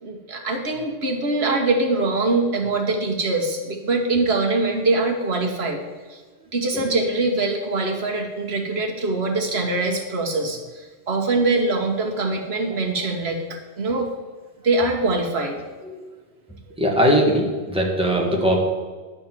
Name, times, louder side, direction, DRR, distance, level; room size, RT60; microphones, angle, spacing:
voice 1, 0.0-5.8 6.1-6.2 6.5-14.1 14.6-15.6, right 2 dB, 65° right, 1 dB, 1.5 m, -23 dB
voice 2, 16.8-18.6, equal, 5° right, -1 dB, 1.5 m, -20 dB
10.0 x 4.4 x 7.4 m, 1.4 s
omnidirectional pair, 1.2 m